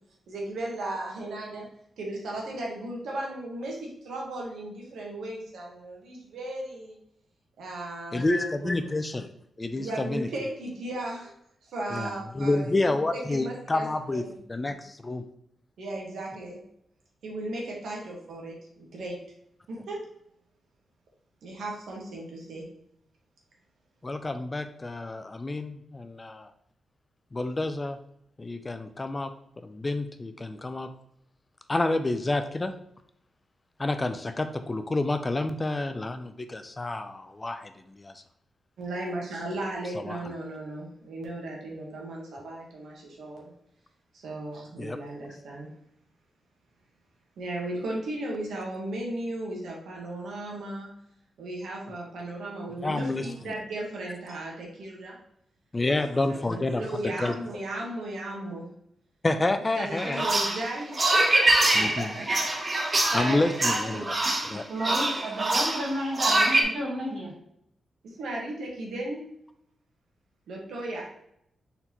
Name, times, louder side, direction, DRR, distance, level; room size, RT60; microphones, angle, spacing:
voice 1, 0.3-1.7 2.0-7.0 7.6-8.7 9.7-11.3 11.6-14.3 15.8-16.6 17.2-19.2 19.7-20.0 21.4-22.6 38.8-43.5 44.1-45.7 47.4-50.9 51.4-55.2 55.8-58.7 59.7-64.1 64.8-65.3 68.0-69.2 70.5-71.1, right 1 dB, 90° right, -2 dB, 1.3 m, -36 dB
voice 2, 8.1-9.3 9.6-10.3 11.9-14.2 14.5-15.2 24.0-26.5 27.3-28.0 28.4-29.3 29.6-30.9 31.7-32.7 33.8-37.7 38.0-38.1 40.0-40.2 44.8-45.0 52.8-53.3 55.7-57.3 59.2-60.3 61.8-62.1 63.1-64.1 64.5-64.7, left 2 dB, 20° left, 9 dB, 0.3 m, -29 dB
sound 1, 60.0-66.6, right 2 dB, 30° right, 0.7 m, -24 dB
voice 3, 64.7-67.3, equal, 55° right, -2 dB, 1.6 m, -32 dB
4.2 x 4.0 x 2.9 m, 0.73 s
wide cardioid pair, 125°, 0 cm